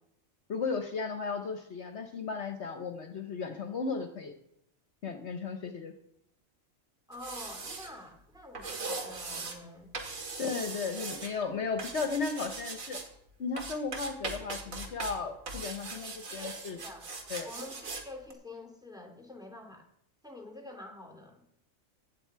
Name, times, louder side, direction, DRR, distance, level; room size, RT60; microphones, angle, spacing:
voice 1, 0.5-4.3 5.0-5.9 10.4-13.0 13.4-16.8 17.3-17.5, left 4 dB, 60° left, 7 dB, 1.2 m, -35 dB
voice 2, 7.1-9.9 16.3-17.0 17.4-19.8 20.2-21.4, left 2 dB, 5° right, 3 dB, 2.3 m, -47 dB
sound 1, 7.1-7.9 8.5-9.6 9.9-11.3 11.8-13.1 13.6-15.2 15.5-18.0 18.3-18.4, right 3 dB, 85° right, 2.3 m, -40 dB
15.5 x 10.5 x 4.7 m, 0.79 s
omnidirectional pair, 1.4 m